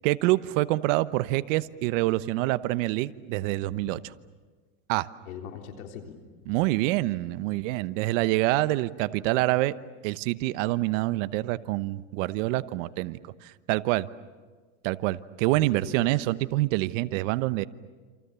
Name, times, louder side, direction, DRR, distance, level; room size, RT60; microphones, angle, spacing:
voice 1, 0.0-4.1 4.9-5.1 6.5-9.7 10.0-14.1 14.8-17.6, right 18 dB, 65° right, 14 dB, 1.1 m, -26 dB
voice 2, 5.3-6.5 15.5-16.2, left 7 dB, 85° left, 3 dB, 3.7 m, -42 dB
28.5 x 27.5 x 7.0 m, 1.4 s
supercardioid pair, 125°, 41 cm